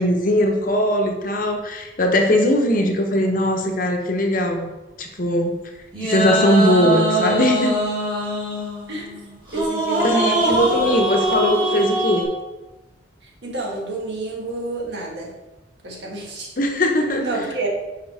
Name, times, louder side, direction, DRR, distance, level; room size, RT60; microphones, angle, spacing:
voice 1, 0.0-4.7 5.0-5.6 6.0-7.8 10.0-12.3 16.6-17.6, left 1 dB, 45° left, 3 dB, 0.8 m, -20 dB
sound 1, 5.9-12.2, right 1 dB, 25° right, 1.8 m, -22 dB
voice 2, 9.5-10.9 13.4-15.3 15.8-16.5 17.2-17.7, right 2 dB, 65° right, -1 dB, 1.5 m, -29 dB
5.4 x 5.3 x 4.8 m, 1.1 s
head